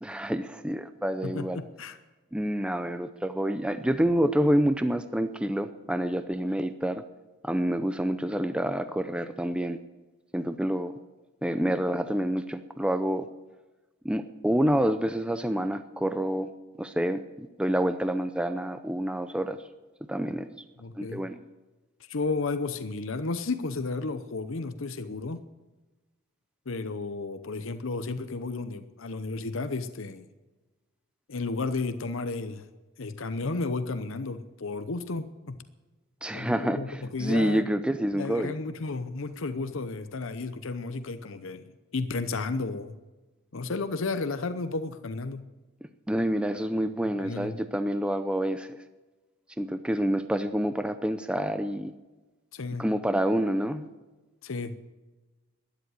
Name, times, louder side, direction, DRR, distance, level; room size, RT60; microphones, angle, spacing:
voice 1, 0.0-1.6 2.3-7.0 7.4-9.8 10.3-10.9 11.4-13.3 14.0-16.5 16.8-19.6 20.1-20.5 21.0-21.4 36.2-38.5 46.1-48.7 49.6-51.9 52.8-53.9, equal, 5° right, 10 dB, 0.5 m, -28 dB
voice 2, 1.2-2.0 20.8-21.2 22.1-25.4 26.7-30.3 31.3-32.7 33.0-35.6 36.3-37.7 38.1-41.6 41.9-43.0 43.5-45.4 47.2-47.6 52.5-52.9 54.4-54.8, left 3 dB, 65° left, 11 dB, 0.8 m, -33 dB
13.0 x 10.5 x 9.6 m, 1.2 s
head